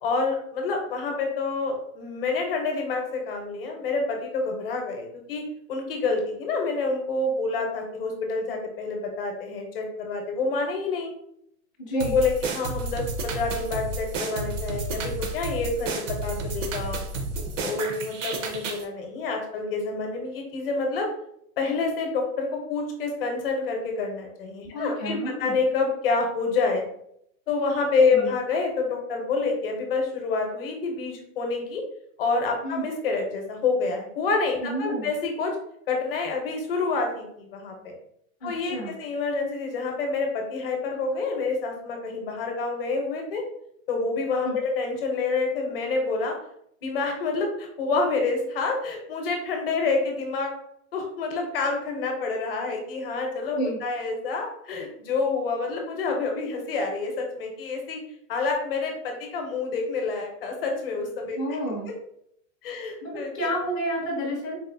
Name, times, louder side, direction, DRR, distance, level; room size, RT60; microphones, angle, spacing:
voice 1, 0.0-5.4 5.7-11.1 11.9-17.0 17.6-21.1 21.6-26.8 27.5-31.8 32.2-35.6 35.9-37.9 38.4-43.4 43.9-46.3 46.8-50.5 50.9-58.0 58.3-61.4 62.6-63.3, left 4 dB, 45° left, 2 dB, 0.7 m, -28 dB
voice 2, 11.8-12.2 24.7-25.6 28.1-28.3 32.6-32.8 34.6-35.1 38.4-39.0 44.4-44.6 53.5-53.8 61.3-61.9 63.0-64.5, right 1 dB, 15° left, -9 dB, 0.4 m, -30 dB
sound 1, 12.0-18.8, right 3 dB, 65° right, 0.7 m, -31 dB
4.1 x 2.5 x 2.6 m, 0.73 s
supercardioid pair, 175°, 41 cm